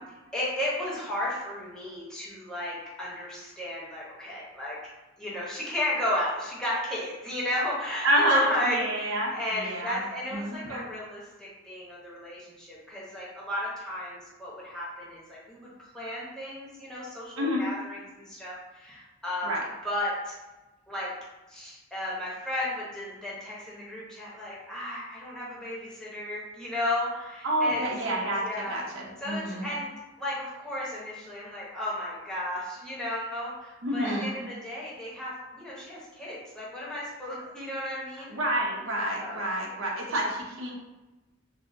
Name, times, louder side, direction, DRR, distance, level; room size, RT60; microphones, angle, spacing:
voice 1, 0.3-4.8 5.2-19.5 19.8-20.4 20.9-21.1 21.5-27.8 28.4-28.8 29.2-29.9 30.2-38.3 39.2-39.4, left 1 dB, 5° left, -7 dB, 1.0 m, -34 dB
voice 2, 8.0-10.9 17.4-17.7 19.4-19.6 27.4-29.7 33.8-34.3 38.2-40.7, equal, 80° right, -2 dB, 0.8 m, -28 dB
6.0 x 2.1 x 2.7 m, 1.1 s
head